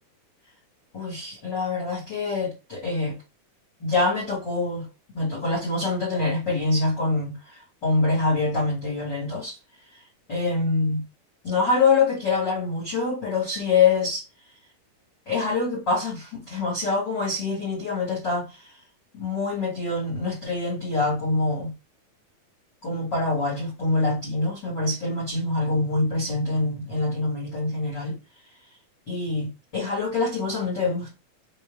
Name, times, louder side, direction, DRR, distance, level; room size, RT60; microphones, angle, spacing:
voice 1, 0.9-3.2 3.8-4.9 5.1-7.4 7.8-9.6 10.3-11.1 11.4-14.2 15.3-18.7 19.1-21.7 22.8-28.2 29.1-31.1, left 3 dB, 30° left, 2.5 m, -25 dB
4.8 x 4.5 x 2.3 m
omnidirectional pair, 4.4 m